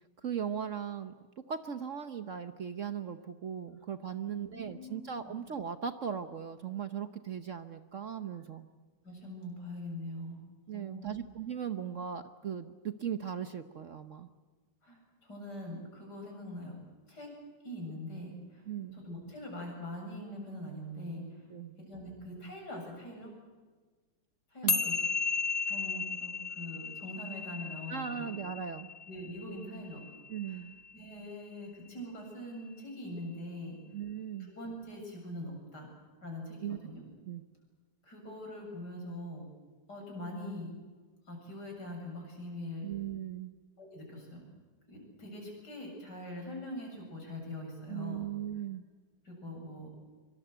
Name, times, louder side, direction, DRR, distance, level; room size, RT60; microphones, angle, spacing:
voice 1, 0.2-8.7 10.7-14.3 18.7-19.0 21.5-21.8 24.6-24.8 27.9-28.9 30.3-30.8 33.9-34.5 36.6-36.8 37.2-37.4 42.8-43.5 47.9-48.8, right 8 dB, 50° right, 9 dB, 1.1 m, -38 dB
voice 2, 4.2-5.4 9.0-10.4 10.7-11.2 14.8-16.8 17.1-17.3 17.6-18.6 18.9-21.4 21.8-23.3 24.5-24.9 25.6-28.3 29.1-30.0 30.5-30.6 30.9-33.8 34.4-35.9 36.2-37.0 38.0-39.5 39.9-40.7 41.3-42.9 43.8-44.4 44.9-48.3 49.2-49.9, left 1 dB, 65° left, 1 dB, 8.2 m, -43 dB
sound 1, 24.7-31.2, left 4 dB, 35° left, 0.7 m, -35 dB
25.0 x 24.5 x 8.0 m, 1.4 s
omnidirectional pair, 1.9 m